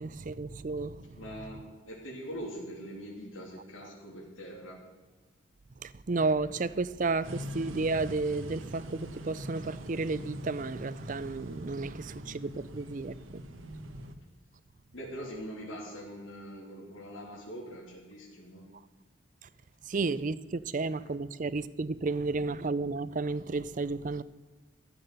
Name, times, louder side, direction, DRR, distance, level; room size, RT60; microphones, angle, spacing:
voice 1, 0.0-1.2 5.8-13.4 19.9-24.2, right 3 dB, 40° right, 0.5 m, -32 dB
voice 2, 1.1-4.8 14.9-18.6, equal, 90° left, 3.0 m, -43 dB
sound 1, 7.2-14.1, equal, 85° right, 1.4 m, -43 dB
13.5 x 8.9 x 6.6 m
head